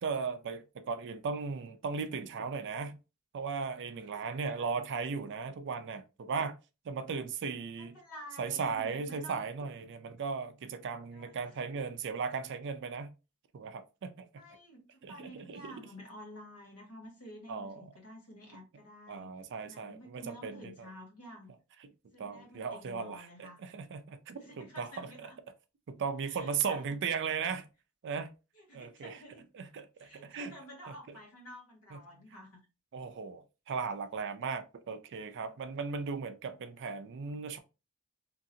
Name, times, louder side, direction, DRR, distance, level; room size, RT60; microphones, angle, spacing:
voice 1, 0.0-3.0 3.3-6.6 6.8-8.0 8.4-13.1 13.5-14.3 15.0-15.9 17.5-17.9 19.1-20.9 21.8-21.9 22.2-25.3 25.9-27.7 28.0-28.3 28.7-29.2 29.5-30.5 31.9-32.0 32.9-37.6, right 5 dB, 55° right, 0.4 m, -37 dB
voice 2, 3.9-4.7 7.8-9.4 11.1-11.7 14.3-19.3 19.6-21.5 22.1-23.7 24.4-25.4 26.3-27.4 28.5-29.4 30.0-32.6, equal, 75° left, 1.1 m, -51 dB
2.8 x 2.7 x 2.6 m
head